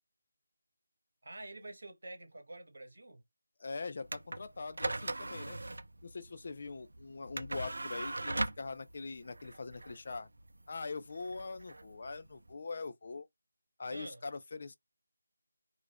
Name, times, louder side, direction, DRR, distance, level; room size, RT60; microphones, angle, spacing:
voice 1, 1.2-3.2 13.9-14.2, right 2 dB, 60° right, 1.0 m, -47 dB
voice 2, 3.6-5.6 6.0-10.3 10.7-13.3 13.8-14.7, left 4 dB, 40° left, 0.3 m, -42 dB
sound 1, 4.0-12.5, right 2 dB, 75° right, 0.4 m, -40 dB
2.4 x 2.1 x 3.3 m
figure-of-eight pair, 175°, 0 cm